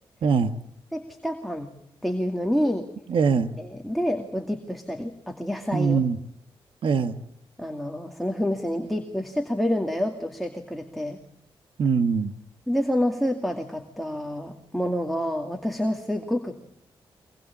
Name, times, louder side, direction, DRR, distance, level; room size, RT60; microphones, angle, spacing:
voice 1, 0.2-0.5 3.1-3.5 5.7-6.2 6.8-7.2 11.8-12.3, right 5 dB, 65° right, 10 dB, 1.5 m, -22 dB
voice 2, 0.9-1.7 2.0-2.9 3.6-6.0 7.6-11.2 12.7-16.6, equal, ahead, 4 dB, 2.3 m, -28 dB
24.5 x 21.0 x 8.6 m, 0.72 s
cardioid pair, 110°, 10 cm